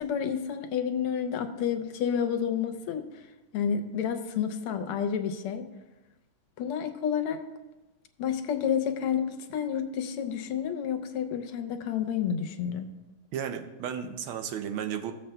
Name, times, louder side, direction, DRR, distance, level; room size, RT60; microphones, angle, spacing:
voice 1, 0.0-3.1 3.5-5.7 6.6-7.4 8.2-12.9, left 8 dB, 80° left, 8 dB, 1.6 m, -30 dB
voice 2, 13.3-15.1, right 8 dB, 75° right, 7 dB, 1.4 m, -34 dB
16.5 x 7.2 x 2.2 m, 1.1 s
omnidirectional pair, 2.4 m